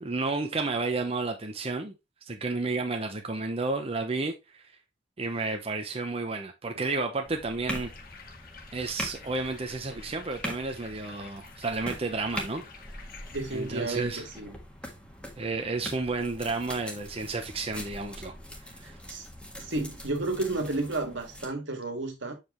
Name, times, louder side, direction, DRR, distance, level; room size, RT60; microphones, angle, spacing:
voice 1, 0.0-1.9 2.3-4.6 5.2-7.9 8.7-12.6 13.5-14.2 15.4-18.3 18.6-19.0, right 3 dB, 30° right, 0.8 m, -31 dB
sound 1, 7.2-21.5, equal, 5° left, 1.6 m, -42 dB
sound 2, 7.8-14.4, left 5 dB, 50° left, 1.3 m, -50 dB
voice 2, 13.3-14.6 18.8-19.3 19.6-22.3, right 2 dB, 80° right, 1.8 m, -32 dB
7.8 x 5.0 x 3.0 m
head